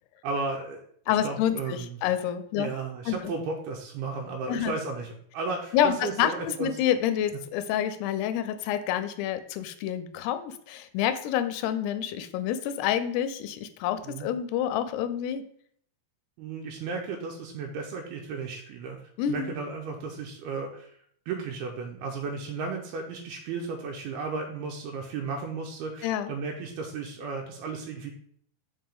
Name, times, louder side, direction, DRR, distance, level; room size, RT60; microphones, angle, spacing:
voice 1, 0.2-2.0 2.6-5.1 5.3-6.7 14.0-14.3 16.4-19.0 19.3-21.0 21.3-28.1, right 4 dB, 85° right, 0 dB, 2.6 m, -34 dB
voice 2, 1.1-2.7 3.1-3.2 4.5-4.7 5.7-15.4 19.2-19.6 26.0-26.3, left 10 dB, 90° left, 11 dB, 2.6 m, -28 dB
5.7 x 5.1 x 3.5 m, 0.64 s
omnidirectional pair, 4.6 m